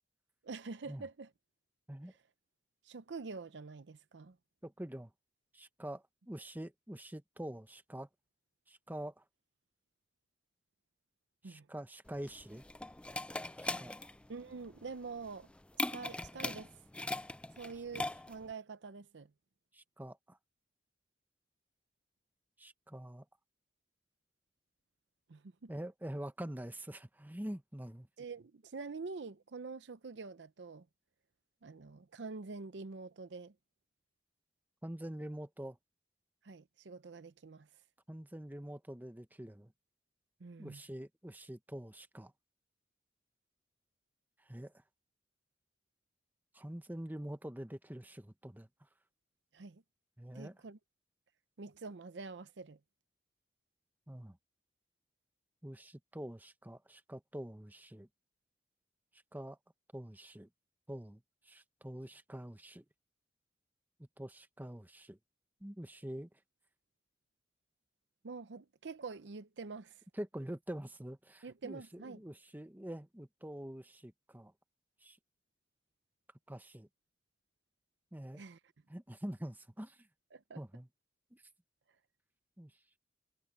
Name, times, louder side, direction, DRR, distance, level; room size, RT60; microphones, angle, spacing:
voice 1, 0.4-1.3 2.8-4.4 11.4-11.7 14.3-15.5 15.8-16.7 17.6-19.3 25.3-25.7 28.2-30.9 31.6-33.5 36.4-37.7 40.4-40.8 49.5-49.8 50.3-50.8 51.6-52.8 68.2-70.0 71.4-72.2 78.3-78.6 80.3-80.6, right 4 dB, 70° right, 0.6 m, -46 dB
voice 2, 4.6-5.1 5.5-8.1 8.7-9.2 11.4-12.6 13.6-14.1 19.7-20.4 22.6-23.2 25.7-28.1 34.8-35.8 38.1-39.7 40.6-42.3 44.4-44.7 46.5-48.7 50.2-50.6 54.1-54.4 55.6-58.1 59.3-59.6 59.9-60.5 60.9-62.8 64.2-65.2 65.6-66.3 70.2-74.5 75.0-75.2 76.5-76.9 78.1-78.4 78.9-80.1 80.6-80.9 81.3-81.4 82.6-82.7, right 1 dB, 10° right, 1.0 m, -45 dB
sound 1, 12.1-18.5, left 2 dB, 5° left, 0.3 m, -40 dB
head